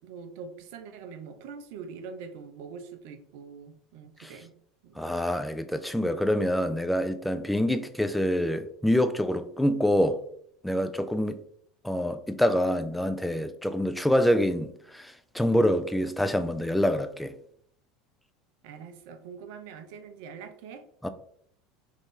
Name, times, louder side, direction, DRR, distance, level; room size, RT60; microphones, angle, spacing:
voice 1, 0.0-4.6 4.8-5.1 18.6-20.8, right 6 dB, 65° right, 0.5 m, -43 dB
voice 2, 5.0-10.2 10.6-11.4 11.8-17.3 21.0-21.1, equal, 5° left, 0.4 m, -26 dB
3.1 x 2.5 x 3.6 m
hypercardioid pair, 80°, 0 cm